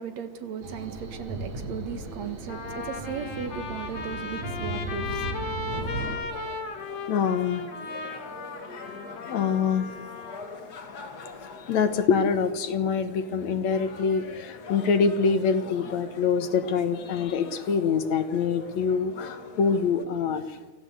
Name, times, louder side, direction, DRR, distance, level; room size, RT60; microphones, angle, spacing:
voice 1, 0.0-6.1, right 7 dB, 65° right, 2.5 m, -37 dB
sound 1, 0.6-6.2, right 2 dB, 80° right, 5.7 m, -36 dB
Trumpet, 1.8-1.9 2.5-10.4, left 4 dB, 90° left, 4.3 m, -36 dB
sound 2, 5.7-20.0, left 4 dB, 40° left, 1.7 m, -44 dB
voice 2, 7.1-7.7 8.7-8.9 9.3-9.9 11.6-20.6, left 6 dB, 65° left, 2.5 m, -25 dB
25.0 x 16.0 x 8.1 m
omnidirectional pair, 3.5 m